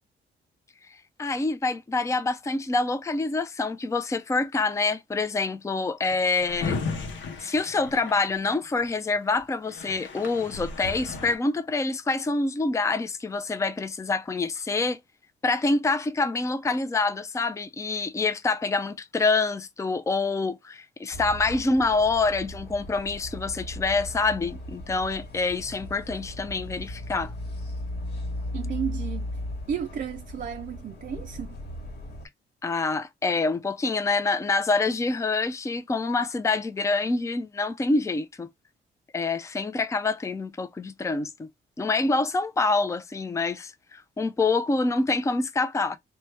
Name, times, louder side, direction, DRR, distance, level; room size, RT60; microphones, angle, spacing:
voice 1, 1.2-7.1 7.4-15.0 15.4-27.3 32.6-38.5 39.1-41.5 41.8-46.0, left 3 dB, 15° left, 0.4 m, -26 dB
Drawer open or close, 6.1-8.9 9.4-9.5 9.6-11.4, left 4 dB, 80° left, 0.7 m, -35 dB
sound 1, 21.1-32.3, left 1 dB, 60° left, 1.3 m, -37 dB
voice 2, 28.5-29.3 29.7-31.6, right 8 dB, 45° right, 0.4 m, -33 dB
3.1 x 2.2 x 3.1 m
cardioid pair, 75°, 19 cm